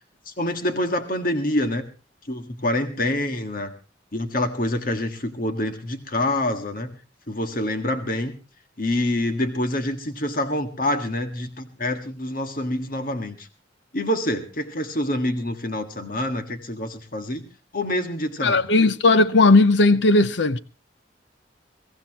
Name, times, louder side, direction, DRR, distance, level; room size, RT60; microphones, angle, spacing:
voice 1, 0.3-1.8 2.3-3.7 4.1-6.9 7.3-8.4 8.8-13.5 13.9-17.5 17.7-18.6, left 1 dB, 45° left, 1.7 m, -26 dB
voice 2, 18.4-20.6, left 2 dB, 65° left, 0.8 m, -16 dB
23.0 x 16.5 x 3.0 m
head